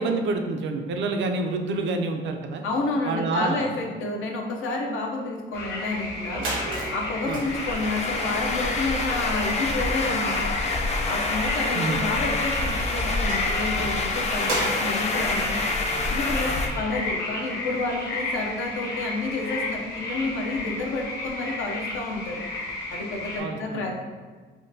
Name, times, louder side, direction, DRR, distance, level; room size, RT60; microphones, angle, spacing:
voice 1, 0.0-2.6 3.0-3.8 7.3-7.4 11.7-12.0 16.4-16.6 23.4-23.8, right 3 dB, 70° right, 4 dB, 0.4 m, -28 dB
voice 2, 2.6-6.6 6.9-10.5 11.1-15.6 16.1-22.4 22.9-24.0, left 3 dB, 80° left, 1 dB, 0.6 m, -30 dB
sound 1, 5.5-23.4, left 2 dB, 55° left, 0.8 m, -33 dB
sound 2, 5.9-6.0 6.2-17.0, right 2 dB, 85° right, 0.9 m, -37 dB
sound 3, 7.4-16.7, left 3 dB, 35° left, 0.4 m, -27 dB
3.6 x 2.2 x 2.6 m, 1.4 s
cardioid pair, 90°, 20 cm